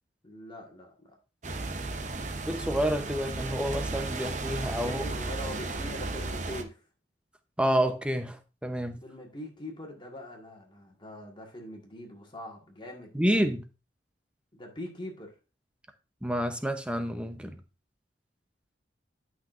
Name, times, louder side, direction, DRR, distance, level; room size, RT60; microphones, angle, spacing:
voice 1, 0.2-1.1 4.7-6.8 9.0-13.1 14.5-15.3, left 1 dB, 25° left, 1.7 m, -42 dB
sound 1, 1.4-6.6, right 3 dB, 40° right, 0.8 m, -34 dB
voice 2, 2.5-5.0 7.6-9.0 13.1-13.7 16.2-17.6, equal, 5° right, 0.8 m, -29 dB
11.5 x 6.0 x 2.6 m
head